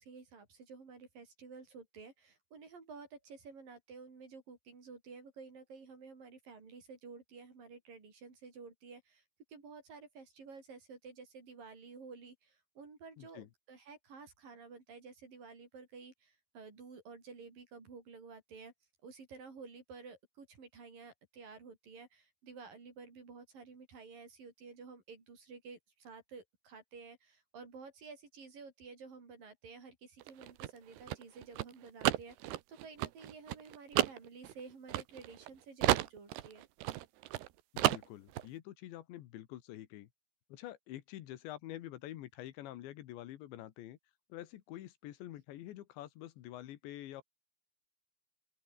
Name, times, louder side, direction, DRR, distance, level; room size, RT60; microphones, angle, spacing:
voice 1, 0.0-9.2 9.5-18.7 19.0-36.6, right 4 dB, 50° right, 6.9 m, -52 dB
voice 2, 13.2-13.5 37.7-40.1 40.5-44.0 44.3-47.2, left 14 dB, 80° left, 3.7 m, -47 dB
sound 1, 30.2-35.5 35.8-37.5 37.8-38.5, right 15 dB, 75° right, 3.1 m, -32 dB
open air
omnidirectional pair, 5.1 m